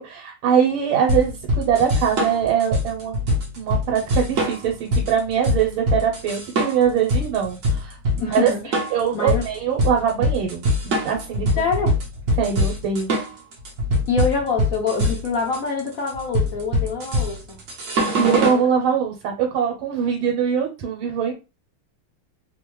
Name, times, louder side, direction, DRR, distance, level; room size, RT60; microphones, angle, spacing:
voice 1, 0.0-3.2 3.6-8.5 8.9-11.5 12.4-13.1 17.9-21.3, right 8 dB, 90° right, 1.5 m, -22 dB
sound 1, 1.1-18.6, left 1 dB, 55° right, 0.9 m, -23 dB
voice 2, 8.2-8.8 9.1-9.5 11.6-11.9 14.1-17.6 18.2-18.7, left 5 dB, 80° left, 0.7 m, -25 dB
3.5 x 2.1 x 3.0 m
omnidirectional pair, 2.3 m